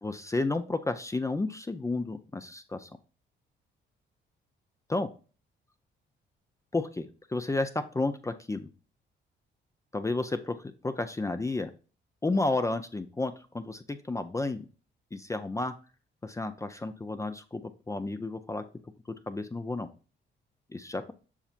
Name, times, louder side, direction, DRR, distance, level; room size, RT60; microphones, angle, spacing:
voice 1, 0.0-2.9 4.9-5.1 6.7-8.7 9.9-10.6 10.8-11.7 12.2-14.7 15.1-15.7 16.2-18.6 19.3-19.9 20.7-21.1, left 2 dB, 15° left, 9 dB, 0.5 m, -31 dB
7.2 x 5.6 x 2.5 m, 0.35 s
cardioid pair, 90°, 20 cm